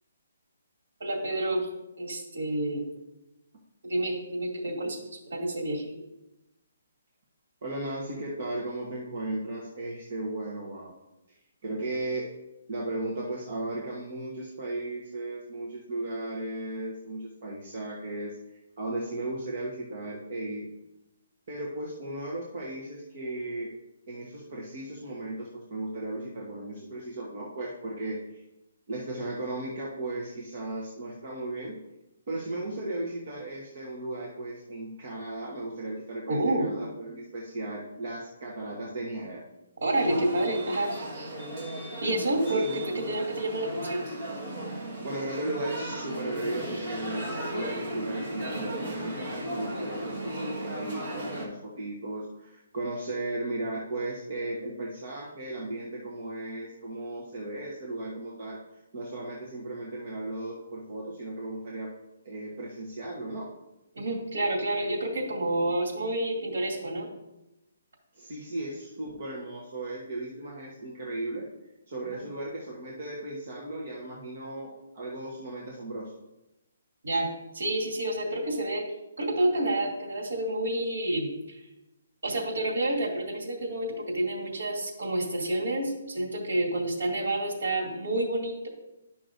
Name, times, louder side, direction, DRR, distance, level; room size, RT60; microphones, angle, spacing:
voice 1, 1.0-1.7 2.0-2.8 3.8-5.0 5.3-5.9 36.3-36.7 39.8-40.9 42.0-44.1 63.9-67.1 72.1-72.3 77.0-77.3 77.5-78.9 79.2-81.6 82.2-88.7, right 1 dB, 75° right, -1 dB, 2.4 m, -29 dB
voice 2, 7.6-11.0 11.3-12.3 12.7-18.4 18.8-20.7 21.5-23.7 24.1-28.4 28.9-31.8 32.3-39.4 42.5-43.0 44.7-58.6 58.9-61.9 62.2-63.5 68.1-71.5 71.9-76.1, right 2 dB, 35° right, -3 dB, 1.1 m, -36 dB
sound 1, 39.9-51.5, right 1 dB, 20° right, 1.5 m, -36 dB
11.5 x 5.7 x 2.6 m, 0.93 s
hypercardioid pair, 175°, 0 cm